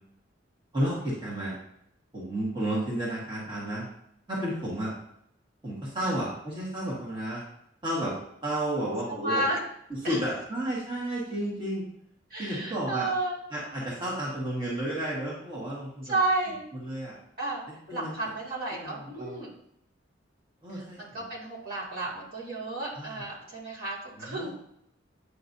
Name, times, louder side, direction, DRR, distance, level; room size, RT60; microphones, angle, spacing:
voice 1, 0.7-1.6 2.1-3.9 4.3-4.9 5.6-7.4 7.8-8.1 8.4-9.4 10.0-11.8 12.4-13.1 13.5-16.1 16.7-17.1 17.9-18.1 18.8-19.4 20.6-21.0 23.0-23.1 24.2-24.5, right 1 dB, 25° right, -6 dB, 1.6 m, -32 dB
voice 2, 9.1-9.6 10.0-10.2 12.3-13.4 16.0-16.7 17.4-17.6 17.9-19.5 20.7-24.5, right 2 dB, 50° right, -5 dB, 2.3 m, -32 dB
8.6 x 6.0 x 2.7 m, 0.74 s
head